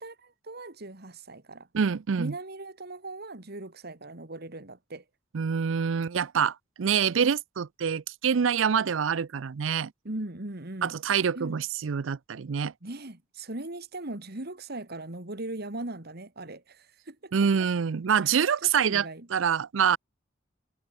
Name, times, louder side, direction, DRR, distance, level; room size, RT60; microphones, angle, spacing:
voice 1, 0.0-1.7 2.2-5.0 10.0-11.0 11.3-11.6 12.8-17.3 18.2-19.3, right 2 dB, 55° right, 2.3 m, -39 dB
voice 2, 1.7-2.3 5.3-9.9 10.8-12.7 17.3-20.0, right 7 dB, 80° right, 0.5 m, -26 dB
head